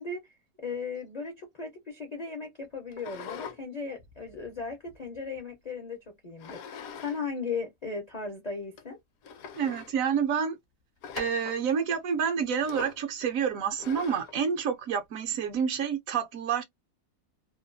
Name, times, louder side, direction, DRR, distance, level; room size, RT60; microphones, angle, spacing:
voice 1, 0.0-9.0, left 4 dB, 55° left, 0.4 m, -37 dB
sound 1, 2.9-3.6 4.0-5.4 6.4-7.2 7.5-7.6 8.3-8.4 8.8-8.9 9.2-9.9 11.0-11.6 12.6-13.0 13.8-14.4, left 7 dB, 70° left, 1.0 m, -43 dB
voice 2, 9.6-10.6 11.1-16.6, right 7 dB, 70° right, 0.9 m, -28 dB
2.8 x 2.2 x 2.5 m
omnidirectional pair, 1.6 m